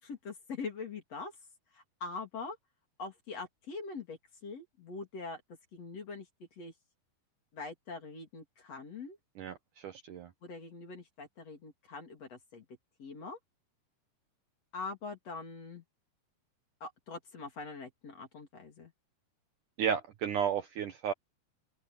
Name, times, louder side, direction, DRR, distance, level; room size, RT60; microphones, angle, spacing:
voice 1, 0.0-1.3 1.7-2.6 3.0-5.4 5.7-6.7 7.5-9.2 10.4-12.6 13.0-13.4 14.7-15.8 16.8-18.9, left 4 dB, 40° left, 3.9 m, -43 dB
voice 2, 9.4-10.3 19.8-21.1, right 8 dB, 65° right, 2.2 m, -33 dB
open air
omnidirectional pair, 4.7 m